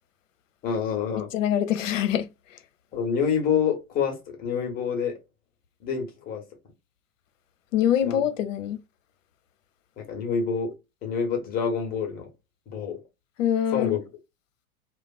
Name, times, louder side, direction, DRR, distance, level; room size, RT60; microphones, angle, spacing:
voice 1, 0.6-1.3 2.9-5.2 5.8-6.4 8.0-8.2 10.0-10.7 11.0-12.3 12.7-13.0 13.7-14.0, left 6 dB, 20° left, 0.7 m, -27 dB
voice 2, 1.3-2.3 7.7-8.8 13.4-14.0, left 10 dB, 60° left, 0.6 m, -24 dB
2.4 x 2.2 x 2.3 m
figure-of-eight pair, 95°, 44 cm